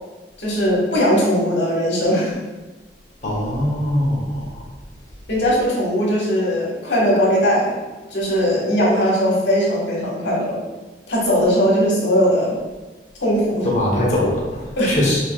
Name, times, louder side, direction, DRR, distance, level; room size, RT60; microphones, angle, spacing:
voice 1, 0.4-2.3 5.3-7.7 8.1-10.6 11.1-12.5 13.2-13.7 14.8-15.0, equal, 90° left, -4 dB, 1.5 m, -19 dB
voice 2, 3.2-4.6 13.6-15.2, left 1 dB, 40° left, -4 dB, 1.0 m, -21 dB
6.0 x 3.0 x 2.4 m, 1.2 s
head